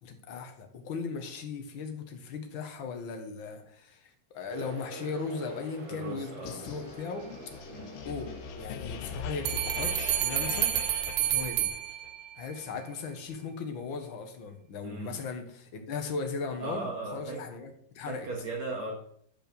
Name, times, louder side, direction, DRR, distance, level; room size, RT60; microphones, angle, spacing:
voice 1, 0.0-7.3 8.0-11.7 12.4-17.7 17.9-18.3, left 5 dB, 55° left, 5 dB, 1.4 m, -38 dB
sound 1, 4.5-12.1, right 2 dB, 35° right, 2.8 m, -47 dB
voice 2, 5.9-6.6 7.7-8.0 14.8-15.2 16.6-17.4 18.0-19.0, right 3 dB, 55° right, -1 dB, 2.7 m, -37 dB
sound 2, 6.5-12.1, left 7 dB, 85° left, 2.7 m, -41 dB
sound 3, 9.4-12.5, right 13 dB, 85° right, 2.5 m, -30 dB
11.0 x 5.4 x 6.8 m, 0.65 s
omnidirectional pair, 4.0 m